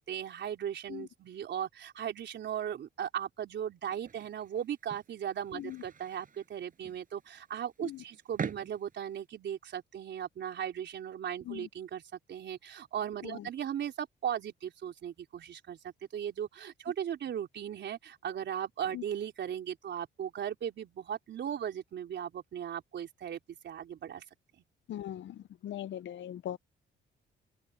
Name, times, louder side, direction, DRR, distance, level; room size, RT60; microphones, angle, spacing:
voice 1, 0.0-12.0 12.3-24.2, right 9 dB, 65° right, 4.0 m, -37 dB
sound 1, 3.9-9.3, right 6 dB, 45° right, 7.1 m, -45 dB
voice 2, 5.5-5.8 7.8-8.0 11.4-11.7 13.2-13.5 18.9-19.0 24.9-26.6, left 12 dB, 70° left, 0.9 m, -40 dB
open air
cardioid pair, 90°, 20 cm